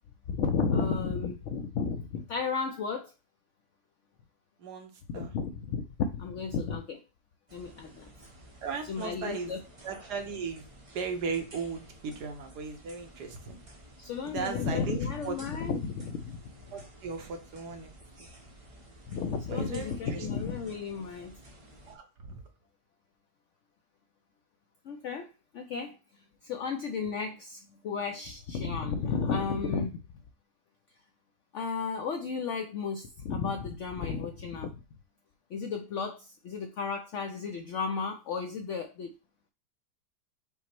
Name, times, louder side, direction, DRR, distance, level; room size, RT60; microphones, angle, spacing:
voice 1, 0.3-3.1 5.1-7.0 7.5-8.1 8.8-9.6 14.0-16.4 19.1-21.4 24.8-26.0 26.4-30.0 31.5-34.8 35.5-39.1, left 5 dB, 75° left, 5 dB, 0.6 m, -33 dB
voice 2, 4.6-5.3 8.6-9.5 9.8-10.6 10.9-13.6 14.2-15.0 15.2-15.4 16.7-17.9 19.5-20.3 21.9-22.4, right 5 dB, 75° right, 5 dB, 1.4 m, -37 dB
sound 1, 7.5-22.0, right 1 dB, 30° right, 0.6 m, -53 dB
5.7 x 2.1 x 4.4 m, 0.30 s
omnidirectional pair, 1.8 m